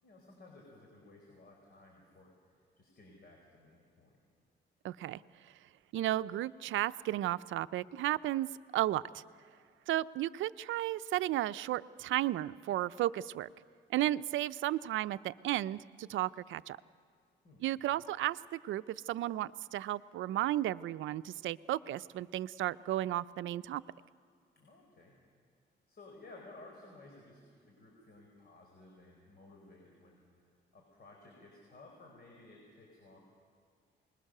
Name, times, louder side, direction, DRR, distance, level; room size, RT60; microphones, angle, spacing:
voice 1, 0.0-4.2 17.4-18.0 24.5-25.2 25.9-30.2 30.7-33.2, left 2 dB, 50° left, 0 dB, 4.8 m, -56 dB
voice 2, 4.8-5.2 5.9-9.2 9.9-13.5 13.9-16.8 17.6-23.8, right 14 dB, 80° right, 15 dB, 0.5 m, -34 dB
27.0 x 21.0 x 6.7 m, 2.1 s
cardioid pair, 90°, 20 cm